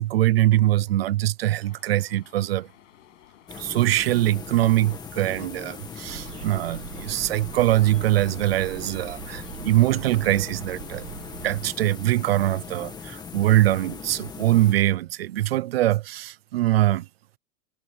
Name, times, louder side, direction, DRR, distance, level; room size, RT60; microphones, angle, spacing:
voice 1, 0.0-2.7 3.5-11.1 11.4-17.1, right 15 dB, 40° right, 0.6 m, -23 dB
sound 1, 1.6-11.8, left 15 dB, 50° left, 7.7 m, -55 dB
sound 2, 3.5-15.1, left 6 dB, 10° left, 1.7 m, -40 dB
sound 3, 6.1-11.6, right 12 dB, 75° right, 2.3 m, -41 dB
supercardioid pair, 175°, 47 cm